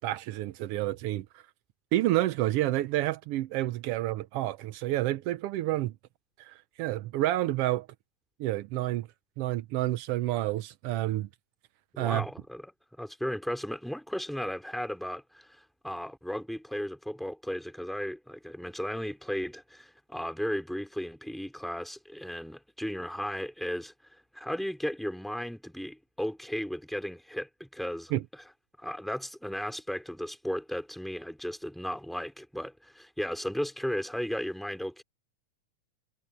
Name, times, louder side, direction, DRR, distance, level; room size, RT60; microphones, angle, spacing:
voice 1, 0.0-1.4 1.9-5.9 6.4-7.9 8.4-9.1 9.4-11.3 12.0-12.3 28.1-28.2, right 15 dB, 85° right, 1.3 m, -29 dB
voice 2, 11.9-12.6 12.9-23.9 24.3-28.1 28.8-35.0, equal, ahead, 3.8 m, -35 dB
omnidirectional pair, 3.4 m